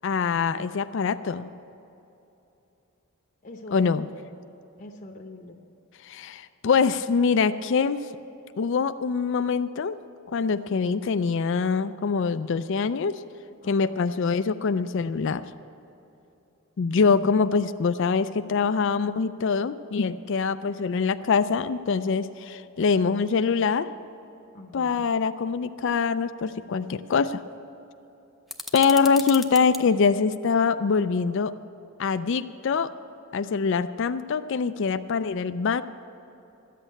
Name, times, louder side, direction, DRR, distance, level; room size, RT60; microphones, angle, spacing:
voice 1, 0.0-1.5 3.7-4.1 6.0-8.0 8.6-10.0 10.3-13.2 13.7-15.4 16.8-23.9 24.7-27.4 28.7-31.5 32.0-32.9 33.3-35.8, left 5 dB, 55° left, 11 dB, 0.4 m, -24 dB
voice 2, 3.4-4.4 4.8-5.6 13.6-14.1 24.5-25.1, left 1 dB, 35° left, 1 dB, 0.8 m, -44 dB
sound 1, 28.5-29.8, left 1 dB, ahead, 0.6 m, -37 dB
13.5 x 8.4 x 8.8 m, 3.0 s
head